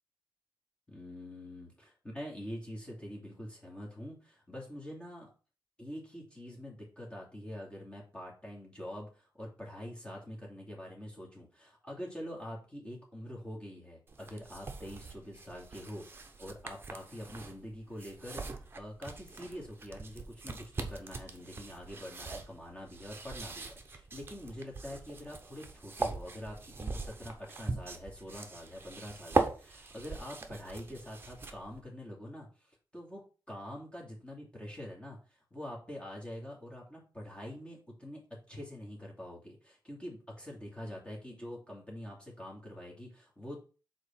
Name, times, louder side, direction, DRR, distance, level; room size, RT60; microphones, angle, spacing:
voice 1, 0.9-5.3 5.8-33.2 33.5-35.2 35.5-43.6, left 1 dB, 15° left, -3 dB, 2.5 m, -45 dB
sound 1, 14.1-31.8, right 4 dB, 30° right, 0.8 m, -40 dB
4.9 x 4.2 x 5.7 m, 0.36 s
wide cardioid pair, 140°, 8 cm